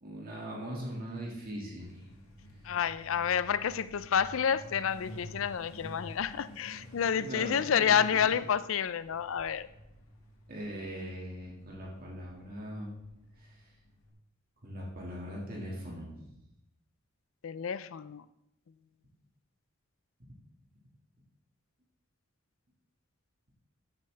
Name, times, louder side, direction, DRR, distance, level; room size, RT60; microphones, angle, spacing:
voice 1, 0.0-2.0 7.1-8.3 10.5-13.0 13.4-13.7 14.6-16.3, equal, 45° right, -3 dB, 2.0 m, -41 dB
Truck, 1.8-14.1, equal, 85° left, 1.8 m, -51 dB
voice 2, 2.6-9.7 17.4-18.2, left 7 dB, 70° left, 16 dB, 0.4 m, -29 dB
14.0 x 7.3 x 3.3 m, 0.84 s
head